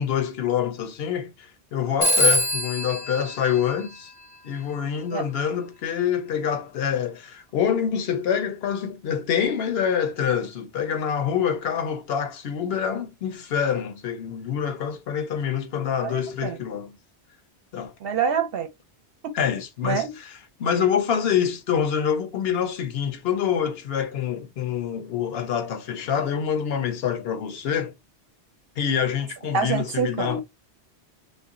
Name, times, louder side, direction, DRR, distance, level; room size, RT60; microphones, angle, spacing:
voice 1, 0.0-4.1 4.4-17.0 17.7-17.9 19.3-27.9 28.8-30.4, left 8 dB, 70° left, 0.8 m, -26 dB
Telephone, 2.0-4.5, equal, 25° left, 0.6 m, -24 dB
voice 2, 18.0-18.7 19.2-19.3 19.8-20.1 29.5-30.4, right 6 dB, 65° right, 0.8 m, -25 dB
2.4 x 2.1 x 3.6 m
omnidirectional pair, 1.1 m